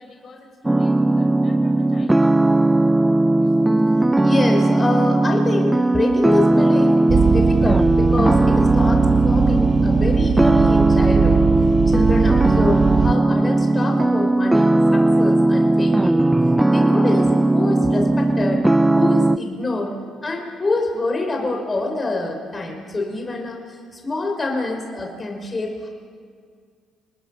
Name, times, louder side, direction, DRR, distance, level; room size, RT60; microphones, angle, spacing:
voice 1, 0.0-2.4, left 3 dB, 55° left, 2 dB, 4.9 m, -45 dB
sound 1, 0.6-19.4, right 2 dB, 15° right, 0.7 m, -17 dB
voice 2, 4.2-11.5 11.9-16.3 16.7-18.6 19.0-20.0 20.2-25.9, left 2 dB, 30° left, 2 dB, 4.8 m, -26 dB
sound 2, 7.1-13.1, right 8 dB, 55° right, 0.6 m, -21 dB
28.5 x 20.0 x 6.2 m, 2.1 s
hypercardioid pair, 55°, 0 cm